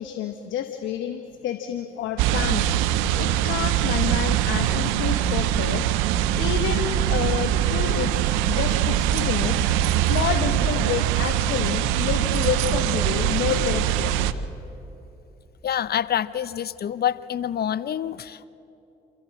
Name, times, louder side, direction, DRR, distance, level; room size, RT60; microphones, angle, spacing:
voice 1, 0.0-2.7 3.1-5.9 6.4-9.6 10.0-14.2, left 9 dB, 75° left, 8 dB, 1.0 m, -29 dB
sound 1, 2.2-14.3, right 11 dB, 85° right, 0.6 m, -23 dB
voice 2, 15.6-18.5, left 10 dB, 55° left, 16 dB, 0.8 m, -27 dB
28.0 x 14.0 x 7.7 m, 2.9 s
hypercardioid pair, 50°, 20 cm